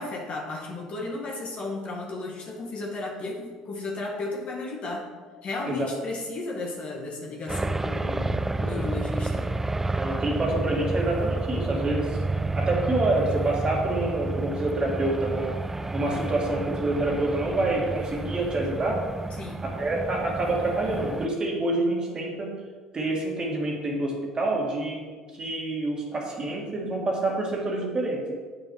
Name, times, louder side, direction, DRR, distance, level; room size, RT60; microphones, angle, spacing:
voice 1, 0.0-5.0 5.4-9.5 19.4-19.7, left 2 dB, 45° left, -2 dB, 2.2 m, -34 dB
sound 1, 7.5-21.3, right 2 dB, 10° right, 0.4 m, -30 dB
voice 2, 10.0-12.2 12.6-15.6 15.9-19.0 19.6-22.5 22.9-25.0 25.4-28.3, right 2 dB, 30° right, -1 dB, 2.3 m, -27 dB
8.4 x 5.5 x 4.8 m, 1.5 s
hypercardioid pair, 65°, 3 cm